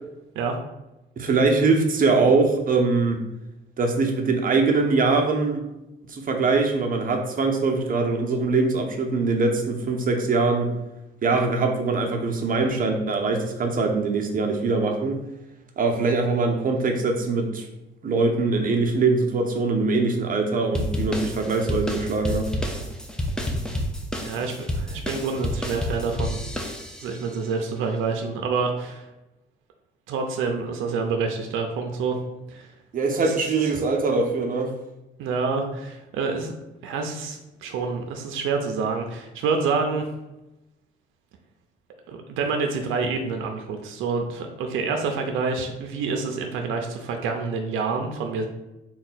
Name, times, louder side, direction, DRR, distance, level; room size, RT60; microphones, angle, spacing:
voice 1, 1.2-3.2 3.8-5.6 6.1-10.7 11.2-15.2 15.8-17.7 18.0-22.5 32.9-34.7, right 3 dB, 45° right, 3 dB, 0.7 m, -22 dB
sound 1, 20.7-27.2, left 1 dB, 5° left, 0.5 m, -29 dB
voice 2, 24.2-26.4 27.0-29.1 30.1-32.2 32.5-32.7 33.2-33.7 35.2-36.5 36.8-40.1 42.1-48.5, right 4 dB, 85° right, 4 dB, 0.5 m, -27 dB
3.7 x 2.2 x 4.2 m, 0.96 s
cardioid pair, 90°, 20 cm